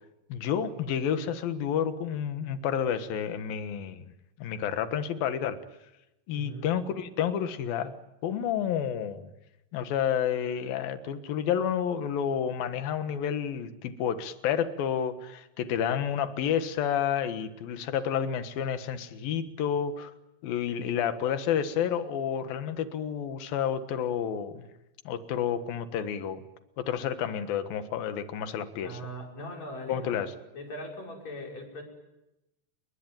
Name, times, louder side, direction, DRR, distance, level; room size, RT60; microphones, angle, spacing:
voice 1, 0.3-4.1 4.4-5.6 6.3-7.9 8.2-9.3 9.7-20.1 20.4-24.7 25.0-26.4 26.8-29.0 29.9-30.3, left 8 dB, 65° left, 10 dB, 2.8 m, -30 dB
voice 2, 6.3-6.7 28.8-30.2 30.5-31.8, equal, 35° left, 0 dB, 6.7 m, -40 dB
29.5 x 21.5 x 9.0 m, 0.93 s
omnidirectional pair, 5.4 m